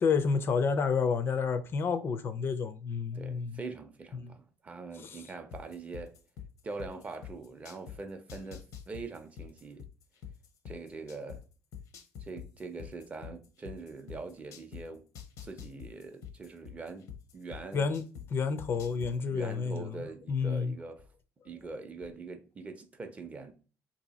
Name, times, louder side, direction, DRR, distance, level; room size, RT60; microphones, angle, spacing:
voice 1, 0.0-3.6 4.1-4.3 5.0-5.2 17.7-18.0 18.3-20.8, left 5 dB, 40° left, 0.4 m, -30 dB
voice 2, 3.1-6.1 6.6-9.8 10.6-11.4 12.2-15.1 15.4-17.9 19.3-21.0 21.4-23.5, right 3 dB, 25° right, 0.5 m, -43 dB
sound 1, 5.5-8.0 8.3-11.4 11.7-14.8 15.1-18.2 18.6-19.1, left 9 dB, 75° left, 0.7 m, -44 dB
2.7 x 2.7 x 4.0 m
cardioid pair, 125°, 6 cm